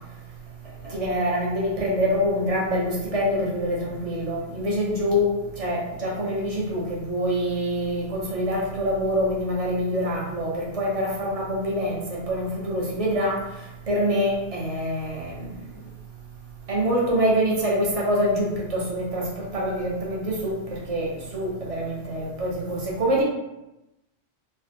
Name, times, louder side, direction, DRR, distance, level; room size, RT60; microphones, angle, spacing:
voice 1, 0.8-5.3 5.6-13.4 13.9-15.5 16.7-23.2, equal, 40° right, -3 dB, 0.6 m, -25 dB
3.2 x 2.0 x 2.7 m, 0.94 s
omnidirectional pair, 1.3 m